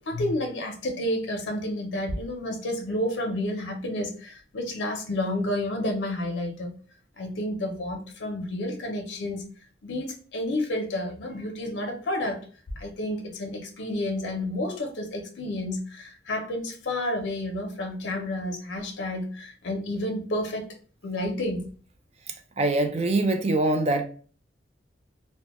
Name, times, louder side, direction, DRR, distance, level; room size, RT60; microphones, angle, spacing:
voice 1, 0.1-6.7 7.2-9.4 9.8-12.4 12.8-20.7 21.0-21.7, left 1 dB, 70° left, 0.5 m, -30 dB
voice 2, 22.6-24.0, right 2 dB, 35° right, 0.3 m, -23 dB
2.1 x 2.1 x 2.8 m
head